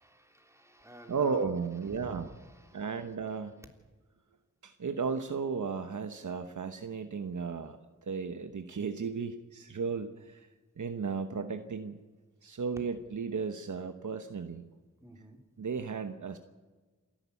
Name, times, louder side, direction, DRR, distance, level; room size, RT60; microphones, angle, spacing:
voice 1, 0.0-1.5 1.8-3.4 15.0-15.4 16.3-16.4, right 1 dB, 10° right, 3 dB, 3.3 m, -52 dB
voice 2, 1.1-2.3 2.7-3.6 4.6-10.5 10.8-12.0 12.4-14.7 15.6-16.4, right 5 dB, 75° right, 8 dB, 1.0 m, -35 dB
27.0 x 11.5 x 8.4 m, 1.3 s
wide cardioid pair, 55°, 30 cm